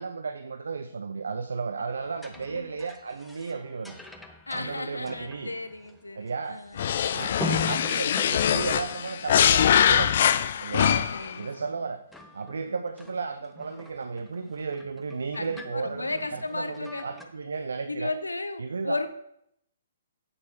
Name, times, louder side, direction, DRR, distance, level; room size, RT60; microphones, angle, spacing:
voice 1, 0.0-4.0 4.5-5.5 6.2-6.6 7.1-10.3 10.6-11.1 11.4-12.0 12.3-18.1 18.6-19.0, right 4 dB, 65° right, 9 dB, 0.6 m, -34 dB
sound 1, 2.0-7.0 7.3-10.8 11.1-11.8 12.1-17.2, left 2 dB, ahead, 1.0 m, -42 dB
voice 2, 2.4-2.7 4.5-6.9 11.1-11.8 15.3-17.1 17.9-19.1, left 2 dB, 80° left, 10 dB, 1.0 m, -34 dB
sound 2, 6.8-11.3, left 9 dB, 50° left, 0.5 m, -23 dB
14.0 x 8.7 x 3.1 m, 0.77 s
figure-of-eight pair, 125°, 0 cm